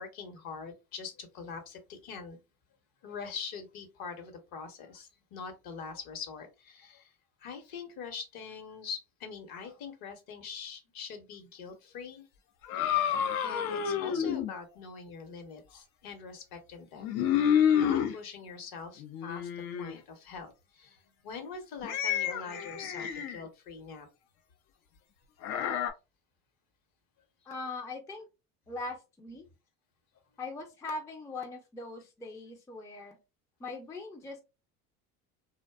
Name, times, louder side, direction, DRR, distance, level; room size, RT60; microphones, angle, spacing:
voice 1, 0.0-2.4 3.0-7.1 7.4-12.2 13.4-17.2 17.7-24.1, left 5 dB, 55° left, 0.9 m, -43 dB
sound 1, 12.6-14.5 17.0-18.1 19.0-19.9 21.8-23.4 25.4-25.9, left 9 dB, 75° left, 0.6 m, -29 dB
voice 2, 27.5-28.3 28.7-29.5 30.4-33.2 33.6-34.4, left 3 dB, 10° left, 0.4 m, -40 dB
2.6 x 2.2 x 2.2 m
hypercardioid pair, 80°, 43 cm